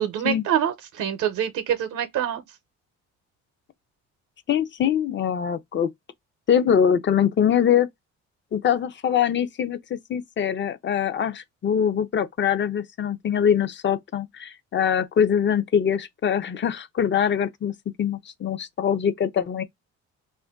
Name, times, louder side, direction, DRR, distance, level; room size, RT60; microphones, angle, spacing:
voice 1, 0.0-2.4, right 10 dB, 80° right, 0.7 m, -25 dB
voice 2, 4.5-5.9 6.5-7.9 8.5-17.7 18.0-19.6, left 8 dB, 40° left, 0.5 m, -23 dB
2.5 x 2.2 x 3.4 m
cardioid pair, 90°, 30 cm